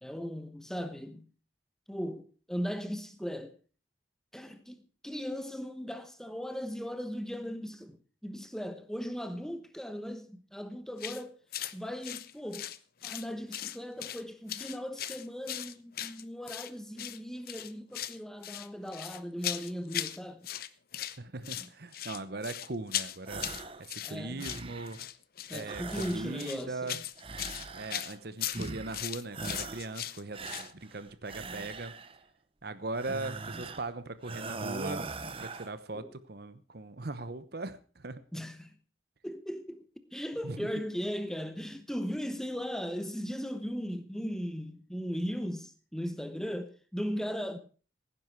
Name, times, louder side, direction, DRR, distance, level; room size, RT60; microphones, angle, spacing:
voice 1, 0.0-1.3 1.9-3.5 4.3-11.4 11.7-12.7 13.0-20.5 21.6-21.7 24.0-24.5 25.5-27.0 35.9-36.1 38.3-38.7 39.2-39.8 40.1-47.6, equal, 5° left, 1.0 m, -38 dB
sound 1, 11.0-11.2 11.5-11.7 12.0-13.3 13.5-14.2 14.5-16.7 17.0-17.2 17.5-18.2 18.4-20.2 20.4-21.2 21.4-30.7, left 12 dB, 50° left, 0.7 m, -38 dB
voice 2, 21.2-23.5 23.8-25.0 25.5-27.0 27.7-32.0 32.6-38.2 40.4-40.7, right 2 dB, 55° right, 1.0 m, -39 dB
sound 2, 23.2-23.8 24.2-25.0 25.6-26.7 27.2-28.2 28.5-29.0 29.3-30.0 30.3-32.2 32.9-33.9 34.2-35.7, right 3 dB, 30° right, 0.9 m, -41 dB
17.0 x 10.0 x 4.7 m
head